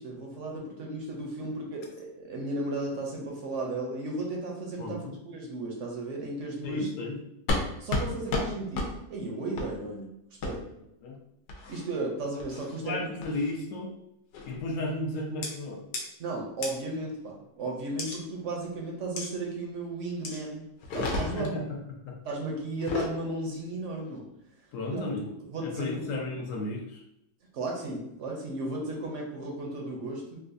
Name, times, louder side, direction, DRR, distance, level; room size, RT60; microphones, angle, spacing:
voice 1, 0.0-5.0 5.2-6.9 7.8-10.1 10.4-10.6 11.7-12.9 16.2-20.6 20.9-21.6 22.2-24.2 24.9-25.0 25.5-26.3 27.5-30.4, right 2 dB, 60° right, -1 dB, 0.8 m, -35 dB
voice 2, 4.8-5.1 6.6-7.2 11.0-11.2 12.8-13.9 14.5-15.8 21.3-21.6 22.1-22.2 24.7-25.3 25.6-27.0, left 2 dB, 60° left, 0 dB, 0.9 m, -33 dB
sound 1, 7.5-7.6 7.9-8.1 8.3-8.5 8.7-8.9 9.6-9.7 10.4-10.5 11.5-11.8 12.4-12.7 13.2-13.5 14.3-14.6 15.4-15.5 15.9-16.0 16.6-16.7 18.0-18.2 19.2-19.3 20.2-20.4 20.8-21.5 22.7-23.1, left 2 dB, 80° left, 1.2 m, -31 dB
3.9 x 2.4 x 2.5 m, 0.80 s
omnidirectional pair, 1.8 m